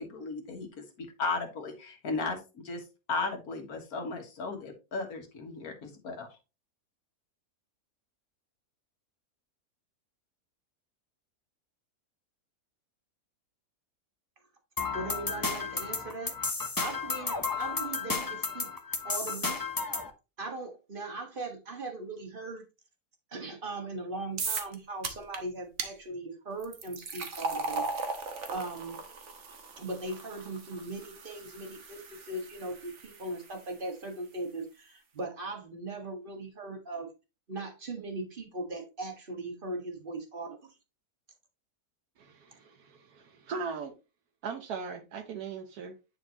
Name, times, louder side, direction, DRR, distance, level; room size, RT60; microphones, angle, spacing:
voice 1, 0.0-2.8 3.1-6.3, left 3 dB, 70° left, 1.9 m, -35 dB
sound 1, 14.8-20.1, left 4 dB, 20° left, 0.6 m, -33 dB
voice 2, 14.9-16.3 16.8-18.7 19.0-19.6 20.4-22.6 23.3-27.8 28.5-29.0 29.8-37.1 37.5-40.8, right 2 dB, 35° right, 1.7 m, -39 dB
sound 2, 24.4-24.7 25.0-25.4 25.8-25.9 26.6-33.7, right 3 dB, 55° right, 1.3 m, -38 dB
voice 3, 42.2-43.9 44.4-45.9, right 5 dB, 75° right, 1.4 m, -39 dB
9.8 x 4.4 x 2.9 m
omnidirectional pair, 1.6 m